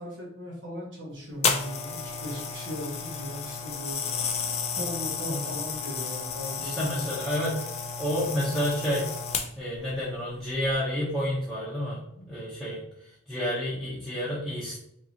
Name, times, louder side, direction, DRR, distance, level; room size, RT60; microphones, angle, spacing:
voice 1, 0.0-4.0 4.8-7.1, equal, 60° right, -6 dB, 1.3 m, -38 dB
sound 1, 1.4-9.8 10.5-10.7, left 6 dB, 30° left, 0.4 m, -32 dB
voice 2, 6.6-9.1 9.6-12.8 13.3-14.8, equal, ahead, -10 dB, 0.9 m, -30 dB
5.1 x 2.7 x 2.9 m, 0.73 s
head